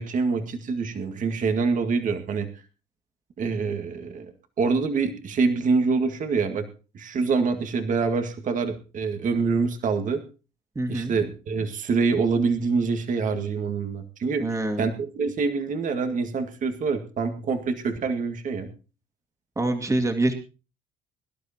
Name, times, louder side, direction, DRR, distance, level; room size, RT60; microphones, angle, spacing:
voice 1, 0.0-2.5 3.4-4.3 4.6-6.7 6.9-10.2 10.9-14.5 14.8-18.7, right 4 dB, 50° right, 7 dB, 2.0 m, -25 dB
voice 2, 10.8-11.1 14.4-14.9 19.6-20.3, right 2 dB, 20° right, 4 dB, 2.3 m, -25 dB
23.0 x 11.5 x 2.9 m, 0.33 s
cardioid pair, 110°, 17 cm